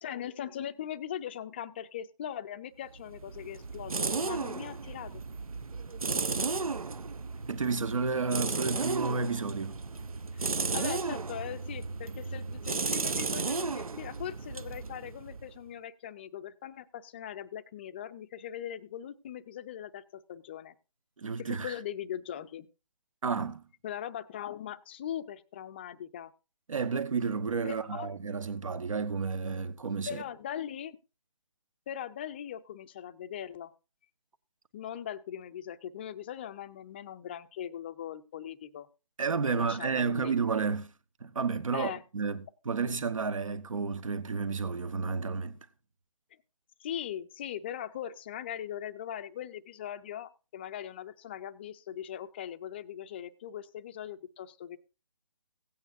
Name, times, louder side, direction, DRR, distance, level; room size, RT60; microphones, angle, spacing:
voice 1, 0.0-5.2 10.3-20.8 21.4-22.7 23.8-26.3 27.6-28.1 30.1-31.0 31.9-33.7 34.7-38.9 39.4-40.3 41.7-42.0 46.8-54.8, left 10 dB, 20° left, 0.4 m, -40 dB
sound 1, 3.0-15.6, right 4 dB, 85° right, 0.7 m, -34 dB
voice 2, 7.5-9.8 21.2-21.7 23.2-23.6 26.7-30.2 39.2-40.9 41.2-45.6, right 5 dB, 70° right, 1.2 m, -31 dB
16.5 x 9.0 x 2.6 m
figure-of-eight pair, 150°, 18 cm